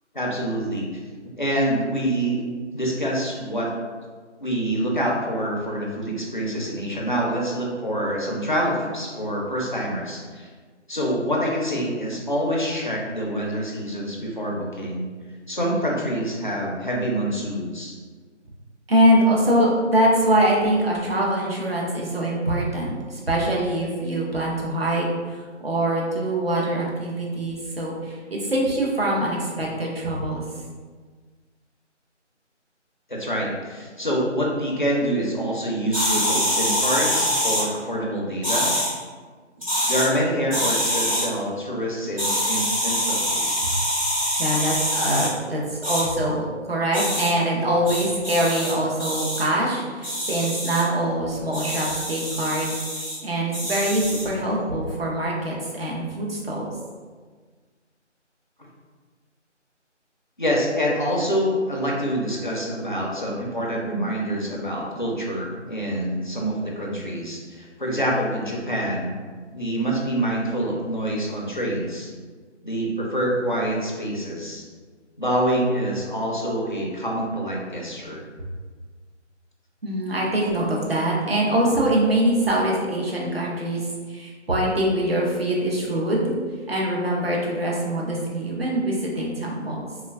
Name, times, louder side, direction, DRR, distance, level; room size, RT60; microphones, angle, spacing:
voice 1, 0.1-0.9 1.4-2.4 2.7-3.7 4.4-10.5 10.9-15.1 15.5-18.0 33.1-38.7 39.9-43.5 60.4-69.2 69.5-72.1 72.6-74.6 75.2-78.2, equal, 45° left, -3 dB, 0.4 m, -26 dB
voice 2, 18.9-30.4 44.4-56.7 79.8-83.8 84.1-86.4 86.7-89.8, right 1 dB, 55° right, -3 dB, 0.6 m, -23 dB
sound 1, 35.9-37.6 38.4-38.9 39.6-40.1 40.5-41.2 42.2-45.3 45.8-46.0 46.9-47.3 47.9-48.7 49.0-49.4 50.0-50.8 51.5-53.2 53.5-54.3, equal, 30° right, 0.9 m, -25 dB
3.2 x 2.2 x 2.2 m, 1.5 s
figure-of-eight pair, 170°, 36 cm